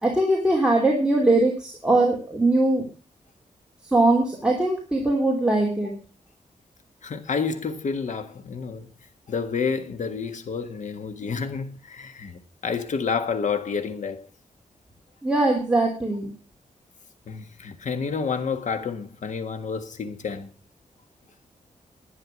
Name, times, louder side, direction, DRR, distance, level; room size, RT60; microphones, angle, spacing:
voice 1, 0.0-2.8 3.9-5.9 15.2-16.3, right 2 dB, 5° right, 3.0 m, -21 dB
voice 2, 7.0-8.9 9.3-14.3 17.3-20.5, left 5 dB, 65° left, 1.7 m, -29 dB
11.5 x 9.9 x 6.1 m
wide cardioid pair, 120°, 13 cm